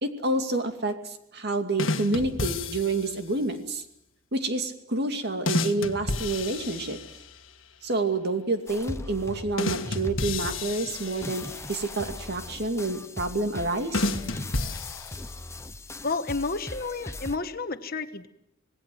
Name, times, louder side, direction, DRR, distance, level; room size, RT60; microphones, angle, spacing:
voice 1, 0.0-3.8 4.3-7.0 7.8-14.1, right 2 dB, 55° right, 5 dB, 2.5 m, -28 dB
sound 1, 1.8-3.2 5.5-7.4 9.6-11.7 13.9-15.6, left 2 dB, 75° left, 1.6 m, -31 dB
sound 2, 8.7-17.4, left 2 dB, 15° left, 0.9 m, -39 dB
voice 2, 16.0-18.3, left 3 dB, 50° left, 9 dB, 1.3 m, -31 dB
26.5 x 19.0 x 7.8 m, 0.80 s
head